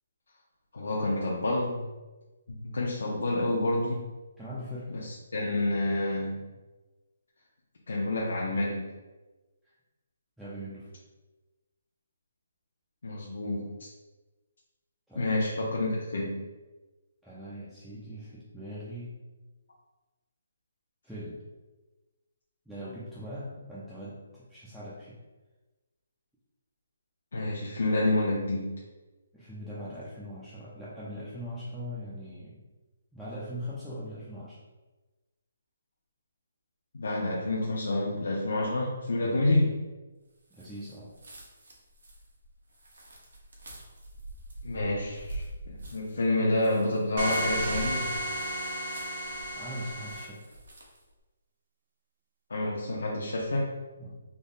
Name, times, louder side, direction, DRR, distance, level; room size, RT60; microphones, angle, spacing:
voice 1, 0.7-1.8 2.5-4.1 4.9-6.5 7.9-8.9 13.0-13.7 15.2-16.5 27.3-28.8 36.9-39.7 44.6-48.1 52.5-53.7, left 2 dB, 70° left, -4 dB, 0.6 m, -28 dB
voice 2, 4.4-5.0 9.6-9.8 10.4-11.0 15.1-15.3 15.6-15.7 17.2-19.2 21.0-21.4 22.7-25.2 29.3-32.6 33.1-34.6 39.2-39.4 40.5-41.1 49.5-50.5 54.0-54.2, equal, ahead, -11 dB, 0.3 m, -41 dB
sound 1, 40.5-51.1, right 1 dB, 80° right, 1.0 m, -45 dB
sound 2, 47.2-50.3, equal, 40° right, 0.6 m, -33 dB
3.4 x 2.0 x 3.9 m, 1.2 s
hypercardioid pair, 175°, 0 cm